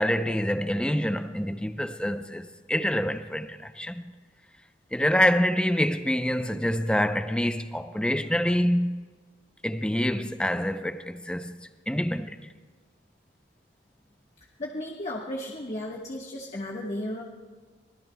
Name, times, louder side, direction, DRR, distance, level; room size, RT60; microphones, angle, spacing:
voice 1, 0.0-4.1 4.9-9.1 9.6-12.4, equal, 5° left, 0.5 m, -26 dB
voice 2, 14.6-17.2, left 1 dB, 40° left, 1.3 m, -34 dB
25.5 x 20.0 x 2.2 m
head